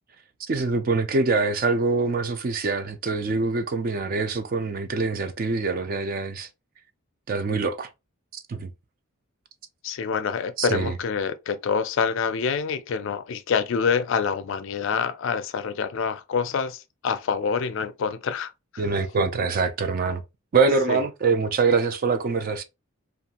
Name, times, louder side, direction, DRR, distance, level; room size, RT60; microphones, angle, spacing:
voice 1, 0.5-6.5 7.3-7.9 8.3-8.7 10.6-11.0 18.8-20.2 20.5-22.6, right 4 dB, 40° right, 0.4 m, -24 dB
voice 2, 9.8-18.5 20.9-21.0, left 6 dB, 60° left, 0.4 m, -26 dB
2.6 x 2.3 x 2.8 m
head